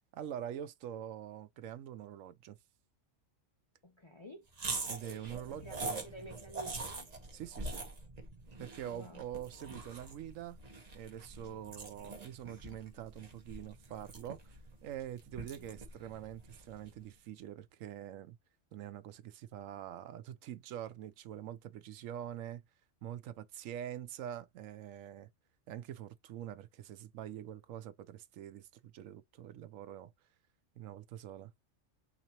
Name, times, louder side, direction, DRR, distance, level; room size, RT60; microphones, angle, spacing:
voice 1, 0.1-2.6 4.9-6.0 7.3-7.9 8.6-10.6 10.9-18.4 18.7-22.6 23.0-25.3 25.7-30.1 30.8-31.5, right 10 dB, 90° right, 1.0 m, -45 dB
voice 2, 3.8-4.5 5.5-7.1 8.8-9.3 11.8-12.1, right 1 dB, 40° left, 0.4 m, -51 dB
sound 1, 4.5-17.0, right 3 dB, 35° right, 1.0 m, -44 dB
5.9 x 2.9 x 2.9 m
omnidirectional pair, 1.3 m